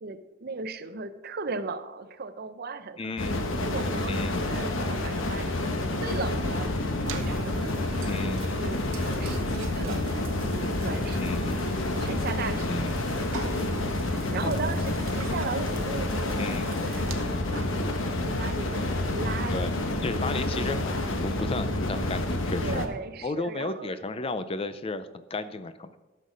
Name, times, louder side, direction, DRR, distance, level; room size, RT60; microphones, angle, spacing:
voice 1, 0.0-5.6 6.0-11.6 11.9-13.0 13.5-16.5 16.8-18.8 19.1-19.8 20.5-20.7 22.6-24.0, right 4 dB, 50° right, 12 dB, 0.6 m, -37 dB
voice 2, 3.0-3.4 4.1-4.4 8.0-8.6 11.2-11.6 12.7-13.0 14.4-14.5 16.4-16.7 19.5-19.7 20.0-20.9 21.2-22.8 23.2-26.0, left 3 dB, 30° left, 12 dB, 0.5 m, -33 dB
sound 1, 3.2-22.9, left 2 dB, 70° left, 1.0 m, -29 dB
sound 2, 7.1-17.1, right 3 dB, 85° right, 1.1 m, -42 dB
12.5 x 6.6 x 5.2 m, 1.1 s
head